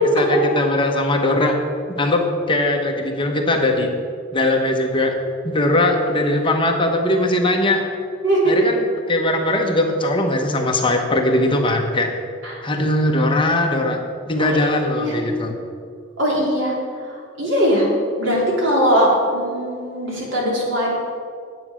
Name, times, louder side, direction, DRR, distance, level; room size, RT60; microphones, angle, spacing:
voice 1, 0.0-1.5 2.0-3.9 4.3-5.1 5.4-7.8 8.5-12.1 12.6-14.0 14.3-15.5, left 1 dB, 25° left, 3 dB, 1.0 m, -20 dB
voice 2, 8.2-8.7 12.4-12.7 14.4-14.6 14.9-15.2 16.2-17.9 18.2-21.1, equal, 70° right, -3 dB, 3.1 m, -20 dB
9.5 x 8.2 x 6.2 m, 2.2 s
head